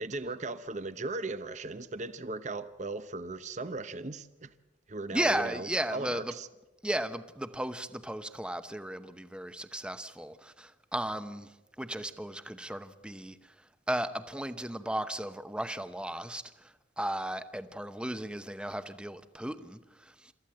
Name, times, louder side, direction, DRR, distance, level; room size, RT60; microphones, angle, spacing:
voice 1, 0.0-4.5 4.9-6.5, right 3 dB, 40° right, 0.8 m, -37 dB
voice 2, 5.1-6.3 6.8-11.5 11.8-13.4 13.9-20.3, right 1 dB, 5° right, 0.8 m, -35 dB
28.0 x 14.0 x 7.8 m
head